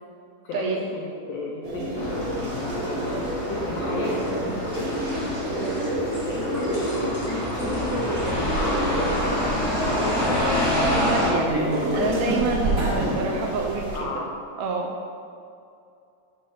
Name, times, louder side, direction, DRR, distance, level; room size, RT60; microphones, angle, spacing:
voice 1, 0.4-5.0 6.2-9.1 9.5-10.3 11.2-12.3 12.6-13.4 13.9-14.3, left 3 dB, 80° left, -2 dB, 1.4 m, -34 dB
sound 1, 1.6-14.0, right 1 dB, 65° right, 0.8 m, -28 dB
sound 2, 1.9-11.3, equal, 15° left, 0.7 m, -28 dB
voice 2, 10.9-11.5 11.9-14.2 14.6-14.9, right 4 dB, 85° right, 2 dB, 1.6 m, -28 dB
6.1 x 5.4 x 4.6 m, 2.5 s
omnidirectional pair, 3.7 m